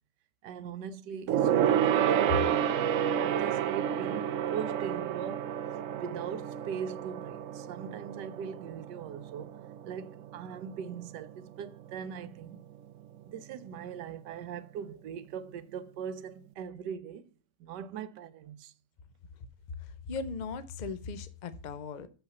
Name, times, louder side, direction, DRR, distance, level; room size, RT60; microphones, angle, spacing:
voice 1, 0.4-5.5 5.9-9.5 9.8-12.6 13.3-17.3 17.6-18.7, right 7 dB, 85° right, 1.3 m, -41 dB
Gong, 1.3-11.0 11.3-11.6 11.9-12.0, right 9 dB, 65° right, 0.8 m, -30 dB
voice 2, 20.1-22.1, left 4 dB, 55° left, 0.4 m, -38 dB
6.5 x 5.7 x 6.8 m
omnidirectional pair, 1.8 m